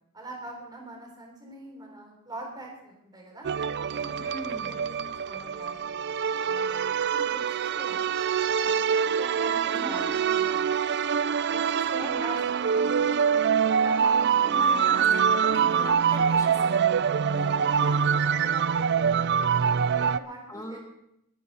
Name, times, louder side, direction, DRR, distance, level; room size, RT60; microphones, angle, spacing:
voice 1, 0.1-3.5 3.9-4.2 4.4-6.1 6.5-8.0 8.5-10.8 11.4-13.2 13.7-15.0 17.3-19.6 19.9-20.8, right 1 dB, 20° right, 0 dB, 3.6 m, -43 dB
sound 1, 3.4-20.2, right 7 dB, 50° right, 0.4 m, -25 dB
voice 2, 4.2-4.8 9.7-10.2 11.9-12.2 14.4-16.8 20.5-20.8, left 1 dB, 15° left, 2 dB, 2.0 m, -38 dB
20.5 x 10.0 x 4.2 m, 0.79 s
head